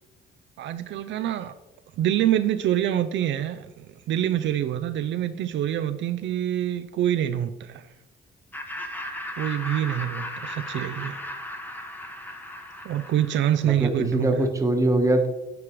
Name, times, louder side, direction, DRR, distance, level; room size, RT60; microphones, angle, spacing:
voice 1, 0.6-1.5 2.0-7.9 9.4-11.2 12.8-14.5, right 11 dB, 70° right, 9 dB, 0.4 m, -26 dB
Laughter, 8.5-13.8, left 1 dB, 10° left, 0.9 m, -36 dB
voice 2, 13.6-15.3, right 1 dB, 15° right, 4 dB, 1.1 m, -22 dB
9.4 x 4.9 x 3.1 m, 1.0 s
cardioid pair, 90°, 20 cm